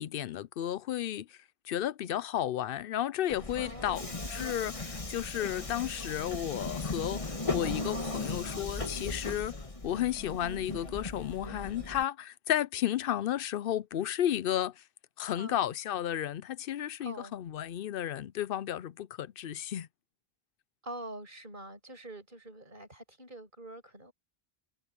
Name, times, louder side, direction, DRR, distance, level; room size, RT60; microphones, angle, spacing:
voice 1, 0.0-1.4 1.6-9.5 9.8-14.8 15.2-19.9, left 11 dB, 65° left, 0.7 m, -33 dB
Subway metro underground, 3.3-12.0, left 3 dB, 30° left, 1.6 m, -37 dB
voice 2, 3.5-4.2 15.3-15.7 17.0-17.3 20.8-24.1, right 1 dB, 50° right, 6.2 m, -45 dB
omnidirectional pair, 1.1 m